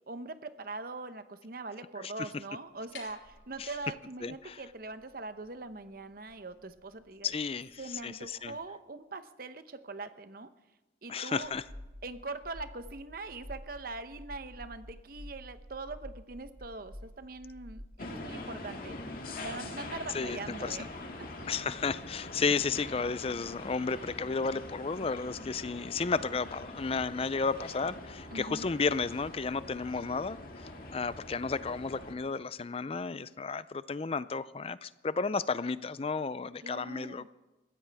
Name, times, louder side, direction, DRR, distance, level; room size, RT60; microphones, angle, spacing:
voice 1, 0.1-7.3 7.8-10.5 11.0-11.5 12.0-19.0 19.4-21.3 28.3-28.7 36.6-37.3, right 3 dB, 50° right, 11 dB, 0.9 m, -42 dB
sound 1, 2.7-8.6, left 5 dB, 75° left, 4.4 m, -58 dB
voice 2, 4.2-4.6 7.2-8.6 11.1-11.6 20.1-20.9 21.5-30.4 30.9-37.3, left 4 dB, 30° left, 16 dB, 0.4 m, -33 dB
sound 2, 11.4-17.8, equal, 35° right, 3.8 m, -49 dB
sound 3, 18.0-32.1, left 2 dB, 50° left, 2.0 m, -44 dB
21.0 x 15.5 x 3.5 m, 1.1 s
head